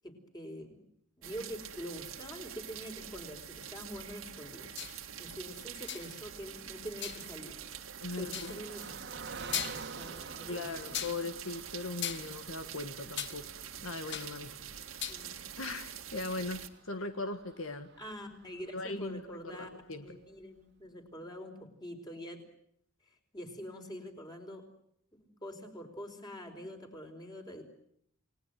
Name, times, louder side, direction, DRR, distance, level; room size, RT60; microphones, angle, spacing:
voice 1, 0.0-0.8 1.2-4.7 5.2-7.6 8.2-9.0 9.4-11.1 15.1-15.4 18.0-19.7 20.0-22.4 23.3-24.7 25.1-27.6, equal, 20° left, 4 dB, 4.5 m, -45 dB
sound 1, 1.2-16.7, right 9 dB, 80° right, 2.1 m, -46 dB
Car passing by, 4.1-19.6 20.1-20.2 20.4-20.6, right 4 dB, 55° right, 1.8 m, -51 dB
sound 2, 4.8-5.0 5.9-6.2 7.0-7.3 8.3-8.6 9.1-9.2 9.5-10.0 10.9-11.2 12.0-13.4 13.7-14.4 14.7-15.2, left 9 dB, 60° left, 1.4 m, -38 dB
voice 2, 8.0-8.5 10.5-13.5 13.8-15.2 15.6-17.9 18.7-20.2, left 2 dB, 75° left, 8 dB, 1.6 m, -39 dB
29.0 x 19.5 x 9.2 m, 0.72 s
head